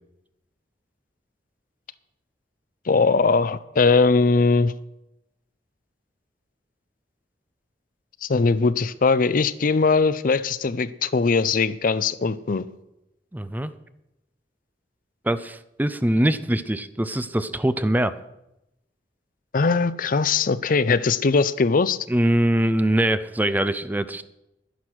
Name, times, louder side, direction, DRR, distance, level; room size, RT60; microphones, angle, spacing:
voice 1, 2.9-4.7 8.2-12.6 19.5-22.0, left 4 dB, 50° left, 15 dB, 0.5 m, -20 dB
voice 2, 13.3-13.7 15.2-18.1 22.1-24.3, right 1 dB, 10° right, 13 dB, 0.5 m, -23 dB
11.5 x 10.5 x 6.3 m, 0.88 s
head